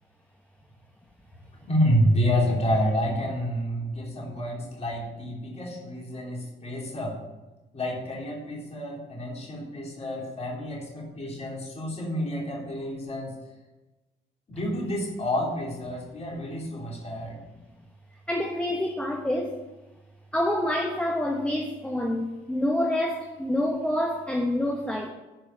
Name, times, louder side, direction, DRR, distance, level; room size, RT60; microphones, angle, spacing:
voice 1, 1.7-7.2 7.7-13.3 14.5-17.4, equal, 30° left, -3 dB, 3.5 m, -28 dB
voice 2, 18.3-19.6 20.3-25.1, left 1 dB, 5° left, 2 dB, 1.1 m, -27 dB
10.5 x 5.0 x 7.1 m, 1.1 s
cardioid pair, 90°, 20 cm